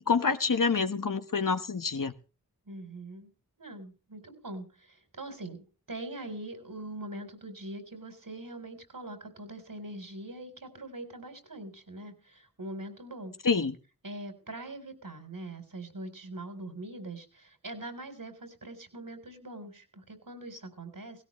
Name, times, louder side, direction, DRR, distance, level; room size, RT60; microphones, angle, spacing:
voice 1, 0.1-2.1 13.4-13.7, left 5 dB, 60° left, 1.2 m, -27 dB
voice 2, 2.7-3.3 3.6-13.4 14.0-21.2, right 1 dB, 65° right, 3.9 m, -42 dB
17.0 x 16.5 x 3.1 m
cardioid pair, 40°, 36 cm